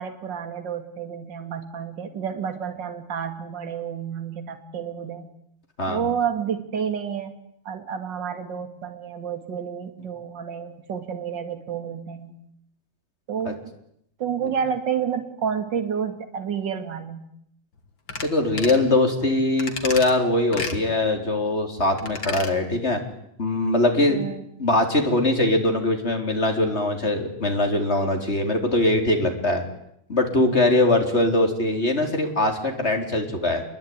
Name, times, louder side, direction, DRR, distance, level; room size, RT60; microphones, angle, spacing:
voice 1, 0.0-5.2 5.9-7.4 7.6-12.3 13.3-13.6 14.2-17.2 24.1-24.4, right 7 dB, 60° right, 7 dB, 2.9 m, -30 dB
sound 1, 18.1-18.3 18.6-18.8 19.6-20.1 20.5-20.8 22.0-22.5 22.9-23.0, left 4 dB, 65° left, 3.5 m, -31 dB
voice 2, 18.2-23.0 23.4-24.3 24.6-29.6 30.1-33.6, left 2 dB, 30° left, 4 dB, 4.4 m, -22 dB
28.0 x 22.5 x 9.6 m, 0.74 s
omnidirectional pair, 2.3 m